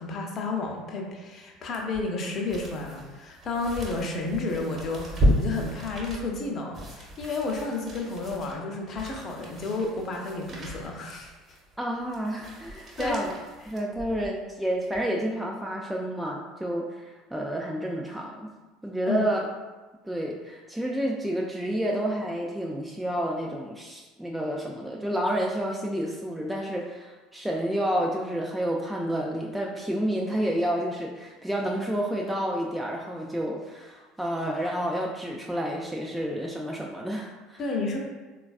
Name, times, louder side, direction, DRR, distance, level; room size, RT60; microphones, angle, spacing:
voice 1, 0.0-11.3 13.0-13.2 19.1-19.3 37.6-38.0, left 3 dB, 45° left, 1 dB, 0.6 m, -31 dB
sound 1, 1.7-14.4 14.9-15.0, equal, 35° right, 0.9 m, -33 dB
voice 2, 11.8-13.3 13.7-18.5 18.8-19.4 20.0-37.6, equal, 5° right, -2 dB, 0.3 m, -30 dB
3.8 x 2.3 x 2.3 m, 1.2 s
hypercardioid pair, 70°, 0 cm